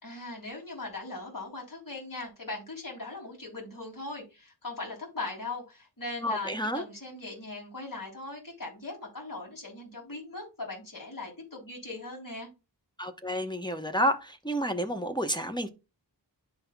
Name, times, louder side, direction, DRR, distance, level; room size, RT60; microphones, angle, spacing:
voice 1, 0.0-12.5, left 2 dB, 50° left, 3.4 m, -39 dB
voice 2, 6.2-6.8 13.0-15.7, equal, 10° left, 0.8 m, -30 dB
11.0 x 4.2 x 2.2 m
wide cardioid pair, 50°, 42 cm